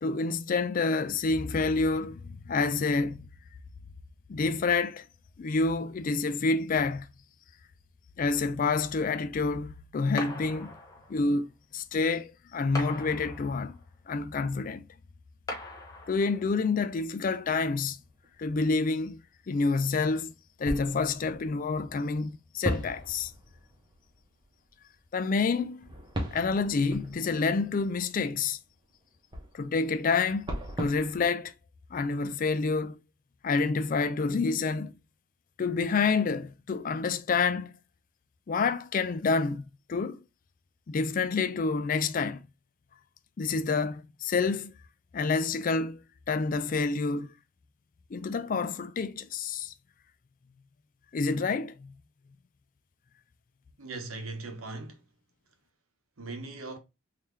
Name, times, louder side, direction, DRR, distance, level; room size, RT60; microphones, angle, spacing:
voice 1, 0.0-3.2 4.3-5.0 5.4-7.1 8.2-10.7 11.1-11.5 11.7-13.8 14.1-14.8 16.1-18.0 18.4-19.2 19.5-20.3 20.6-23.3 25.1-25.9 26.3-28.6 29.5-31.5 31.9-33.0 33.4-34.9 35.6-37.7 38.5-39.6 39.9-40.2 40.9-42.4 43.4-44.7 45.1-46.0 46.3-47.3 48.1-49.7 51.1-51.9, left 4 dB, 40° left, 0.3 m, -28 dB
sound 1, 10.2-11.3 12.7-13.9 15.5-16.5, left 2 dB, 15° left, 0.9 m, -40 dB
sound 2, 18.2-18.3 20.6-22.2 22.6-24.6 25.7-31.3, equal, 20° right, 1.0 m, -38 dB
voice 2, 53.8-55.0 56.2-56.8, right 3 dB, 80° right, 1.0 m, -39 dB
3.9 x 2.7 x 3.1 m
head